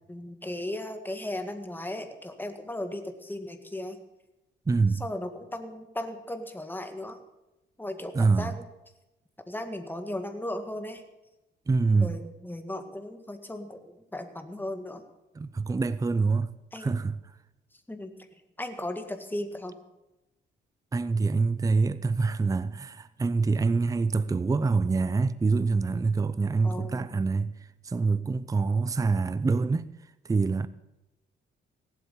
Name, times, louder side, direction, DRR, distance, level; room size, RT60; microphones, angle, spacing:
voice 1, 0.1-4.0 5.0-7.2 7.8-8.5 9.5-11.0 11.9-15.0 16.7-16.9 17.9-18.1 18.6-19.8 26.6-27.1, left 1 dB, 10° left, 1.8 m, -36 dB
voice 2, 4.7-5.0 8.1-8.6 11.7-12.2 15.3-16.5 16.8-17.2 20.9-27.5 27.8-29.9 30.3-30.7, right 4 dB, 15° right, 0.5 m, -25 dB
17.5 x 8.0 x 6.9 m
cardioid pair, 90°, 20 cm